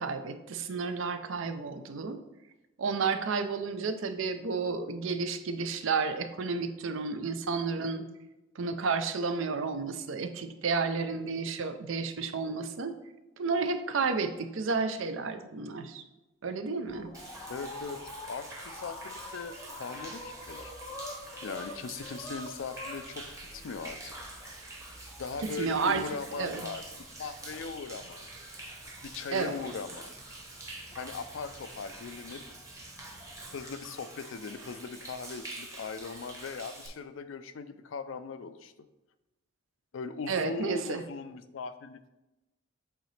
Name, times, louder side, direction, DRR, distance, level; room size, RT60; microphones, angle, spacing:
voice 1, 0.0-2.2 2.8-8.1 8.6-12.9 13.4-16.0 16.4-17.1 25.6-26.0 26.4-26.7 29.3-29.6 40.3-41.0, right 4 dB, 65° right, 9 dB, 0.5 m, -31 dB
sound 1, 16.9-33.6, left 2 dB, 20° left, 0.6 m, -48 dB
Human voice / Rain / Stream, 17.1-36.9, right 2 dB, 15° right, 0.9 m, -46 dB
voice 2, 17.5-20.7 21.4-23.3 23.5-24.2 25.2-28.3 29.0-30.1 31.0-32.4 33.5-38.7 39.9-42.1, left 4 dB, 65° left, 12 dB, 0.4 m, -39 dB
8.0 x 3.8 x 3.2 m, 1.0 s
head